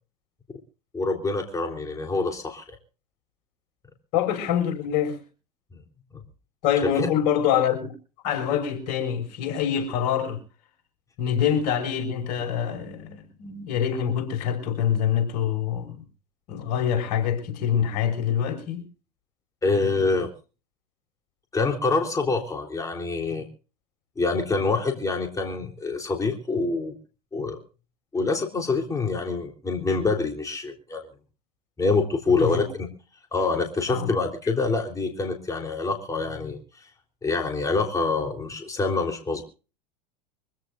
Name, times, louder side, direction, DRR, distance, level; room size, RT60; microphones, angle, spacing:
voice 1, 0.9-2.8 6.8-7.1 19.6-20.3 21.5-23.5 24.2-27.0 27.3-27.6 28.1-31.1 31.8-32.7 33.3-36.9 37.2-39.4, left 3 dB, 15° left, 3.7 m, -26 dB
voice 2, 4.1-5.2 6.6-7.9 8.2-10.4 11.2-16.0 16.5-18.8 32.4-32.6 33.9-34.1, left 9 dB, 60° left, 6.2 m, -25 dB
24.5 x 16.0 x 2.6 m
hypercardioid pair, 90°, 21 cm